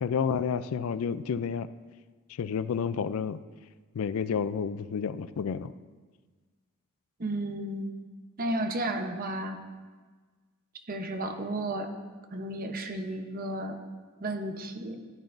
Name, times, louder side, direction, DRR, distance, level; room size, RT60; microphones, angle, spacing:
voice 1, 0.0-1.7 2.3-3.4 3.9-5.7, left 6 dB, 80° left, 14 dB, 0.4 m, -30 dB
voice 2, 7.2-7.9 8.4-9.6 10.9-11.9 12.3-13.8 14.2-15.0, right 1 dB, 45° right, 6 dB, 0.8 m, -33 dB
14.5 x 9.0 x 2.6 m, 1.4 s
head